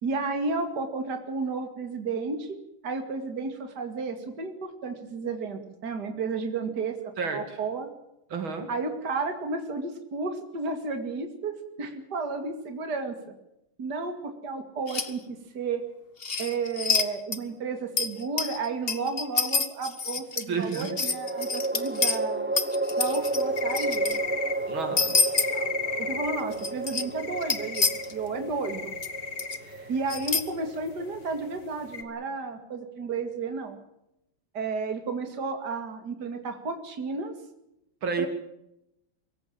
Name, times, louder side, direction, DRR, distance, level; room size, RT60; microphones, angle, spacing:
voice 1, 0.0-2.6 2.8-7.0 7.3-7.9 8.7-13.3 13.8-15.8 16.4-22.5 23.0-24.2 26.0-27.8 28.1-28.9 29.9-33.8 34.5-37.3 38.2-38.3, right 4 dB, 55° right, 6 dB, 2.9 m, -32 dB
voice 2, 7.2-7.6 8.3-8.7 20.5-21.0 24.7-25.6 29.6-29.9 38.0-38.3, right 5 dB, 75° right, 7 dB, 3.3 m, -32 dB
sound 1, 14.9-15.1 16.2-17.1 17.3-17.4 18.0-22.2 22.6-24.2 25.0-25.5 26.5-27.0 27.4-28.1 29.0-29.1 29.4-29.6 30.1-30.4, left 4 dB, 30° left, 1.5 m, -27 dB
sound 2, 17.7-18.5 20.8-32.1, right 2 dB, 15° right, 0.4 m, -32 dB
sound 3, 23.1-32.0, left 4 dB, 45° left, 2.2 m, -35 dB
24.5 x 15.0 x 9.0 m, 0.84 s
omnidirectional pair, 2.2 m